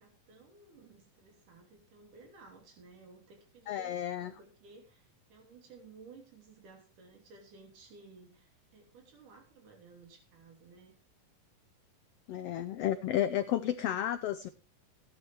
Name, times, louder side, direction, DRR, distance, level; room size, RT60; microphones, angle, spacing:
voice 1, 0.0-11.0, right 4 dB, 75° right, 3 dB, 4.5 m, -56 dB
voice 2, 3.7-4.3 12.3-14.5, left 11 dB, 85° left, 11 dB, 1.3 m, -32 dB
16.5 x 11.0 x 3.1 m, 0.31 s
omnidirectional pair, 3.7 m